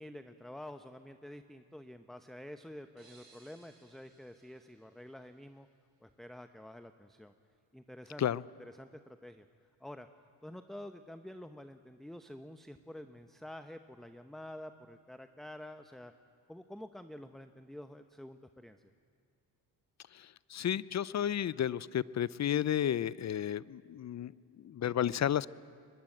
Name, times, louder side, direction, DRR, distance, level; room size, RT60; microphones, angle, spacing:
voice 1, 0.0-5.7 6.0-7.3 7.7-8.3 8.6-9.4 9.8-10.1 10.4-16.1 16.5-18.8, left 1 dB, ahead, 8 dB, 0.9 m, -48 dB
sound 1, 3.0-5.7, right 3 dB, 45° right, 7.7 m, -64 dB
voice 2, 20.1-25.5, left 10 dB, 35° left, 20 dB, 0.5 m, -32 dB
21.5 x 21.5 x 7.9 m, 2.3 s
supercardioid pair, 60°, 48 cm